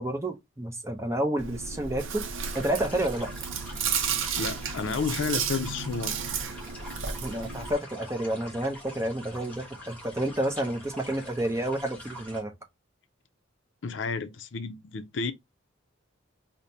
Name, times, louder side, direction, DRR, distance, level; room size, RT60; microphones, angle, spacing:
voice 1, 0.0-2.2 2.5-3.3 7.2-12.5, right 1 dB, 15° right, 0.6 m, -30 dB
Chewing mastication, 1.4-7.7, right 6 dB, 70° right, 0.6 m, -33 dB
sound 1, 2.4-12.4, equal, 5° left, 1.2 m, -45 dB
voice 2, 4.4-6.1 13.8-15.3, left 4 dB, 60° left, 0.5 m, -31 dB
5.0 x 2.1 x 2.7 m
head